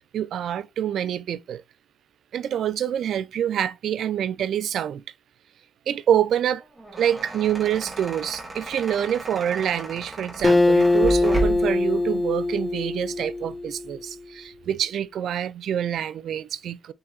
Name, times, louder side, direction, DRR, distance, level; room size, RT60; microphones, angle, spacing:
voice 1, 0.1-1.6 2.3-5.0 5.9-6.6 7.0-16.9, right 10 dB, 70° right, 0.3 m, -26 dB
sound 1, 6.6-11.8, right 3 dB, 10° right, 1.0 m, -34 dB
Acoustic guitar, 10.4-13.9, left 2 dB, 15° left, 0.3 m, -22 dB
3.7 x 2.8 x 4.1 m
wide cardioid pair, 175°, 0 cm